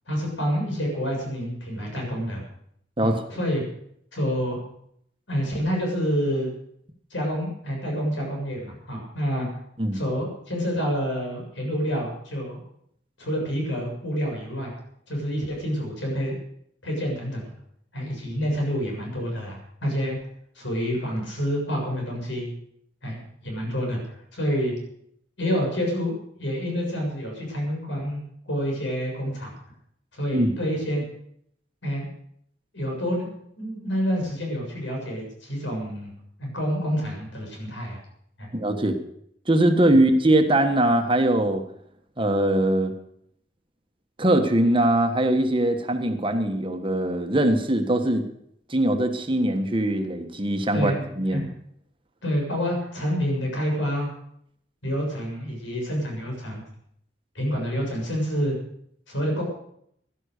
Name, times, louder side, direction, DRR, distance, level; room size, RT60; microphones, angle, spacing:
voice 1, 0.1-2.4 3.0-3.6 4.1-4.6 5.3-6.5 7.1-9.5 9.9-12.6 13.2-14.7 15.1-16.3 16.8-17.5 17.9-20.2 20.5-22.5 23.0-24.0 24.3-24.7 25.4-26.1 26.4-29.5 30.1-31.0 31.8-32.0 32.7-33.3 33.6-36.1 36.4-38.0 38.4-38.5 50.7-51.0 51.3-51.4 52.2-54.1 54.8-56.7 57.3-58.6 59.1-59.4, equal, 80° left, 0 dB, 7.2 m, -28 dB
voice 2, 38.5-39.0 39.5-41.6 42.2-42.9 44.2-48.3 48.7-51.5, right 1 dB, 30° right, 5 dB, 1.4 m, -21 dB
16.5 x 11.5 x 6.7 m, 0.71 s
head